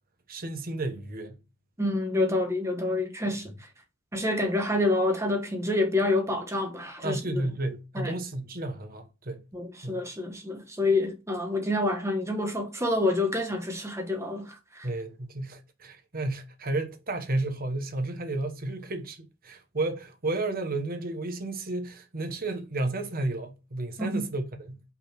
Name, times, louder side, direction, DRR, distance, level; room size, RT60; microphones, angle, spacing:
voice 1, 0.3-1.4 7.0-9.4 9.8-10.0 14.8-24.8, right 2 dB, 45° right, 1.2 m, -32 dB
voice 2, 1.8-3.5 4.1-7.4 7.9-8.1 9.5-14.9 24.0-24.2, left 2 dB, 15° right, 1.3 m, -27 dB
5.7 x 4.1 x 5.9 m
head